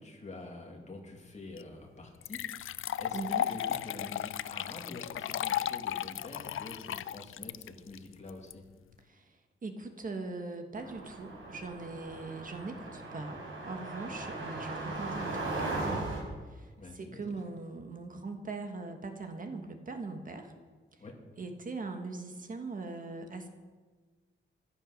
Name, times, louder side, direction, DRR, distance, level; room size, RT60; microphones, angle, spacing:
voice 1, 0.0-8.7 12.1-12.2 16.8-17.3 21.0-21.2, left 2 dB, 35° left, 1 dB, 2.6 m, -47 dB
sound 1, 1.6-1.7 2.2-8.5, left 11 dB, 90° left, 0.4 m, -35 dB
voice 2, 3.1-3.5 9.1-20.5 20.9-21.0 21.4-23.5, right 3 dB, 40° right, 5 dB, 1.5 m, -41 dB
sound 2, 10.8-16.2, right 2 dB, 85° right, 5.0 m, -38 dB
15.0 x 12.5 x 6.6 m, 1.4 s
wide cardioid pair, 170°, 20 cm